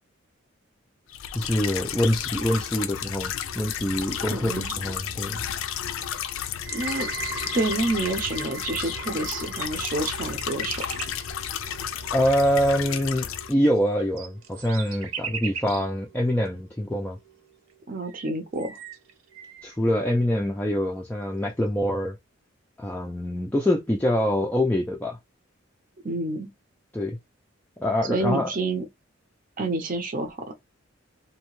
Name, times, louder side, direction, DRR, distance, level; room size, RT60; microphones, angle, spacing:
sound 1, 1.1-13.5, left 9 dB, 80° left, 0.4 m, -32 dB
voice 1, 1.3-5.4 12.1-17.2 19.6-22.2 22.8-25.2 26.9-27.2 27.8-28.5, equal, 10° left, 0.3 m, -25 dB
sound 2, 2.4-2.9 3.8-4.0 4.2-5.3 6.0-6.1 6.9-7.0 7.2-7.9 9.0-9.1 9.4-11.2 12.4-15.9 16.5-16.6 17.7-17.8 18.0-19.7, right 7 dB, 85° right, 0.6 m, -40 dB
voice 2, 4.3-4.8 6.7-7.1 7.5-10.8 17.9-18.8 26.0-26.5 28.1-28.9 29.6-30.4, right 2 dB, 40° right, 0.6 m, -28 dB
sound 3, 6.6-17.8 18.1-18.6 19.3-19.4, right 6 dB, 65° right, 1.0 m, -41 dB
2.7 x 2.1 x 3.0 m
head